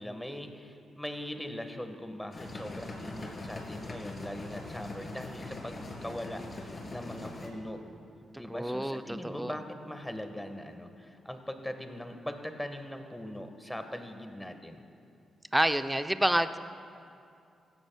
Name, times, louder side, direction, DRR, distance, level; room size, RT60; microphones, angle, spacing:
voice 1, 0.0-7.8 8.3-14.9, left 1 dB, 10° left, 6 dB, 1.5 m, -41 dB
sound 1, 2.3-7.5, left 2 dB, 45° left, 3.2 m, -42 dB
voice 2, 8.5-9.5 15.5-16.6, right 1 dB, 10° right, 10 dB, 0.6 m, -28 dB
16.5 x 15.0 x 2.3 m, 2.6 s
hypercardioid pair, 40°, 0 cm